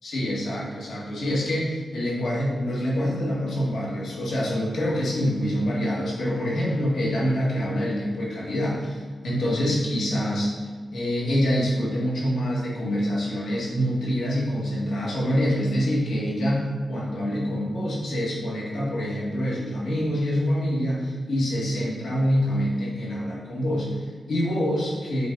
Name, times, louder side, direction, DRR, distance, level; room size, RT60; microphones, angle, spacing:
voice 1, 0.0-25.3, equal, 85° left, -5 dB, 2.0 m, -26 dB
7.8 x 4.0 x 4.1 m, 1.5 s
wide cardioid pair, 115°, 0 cm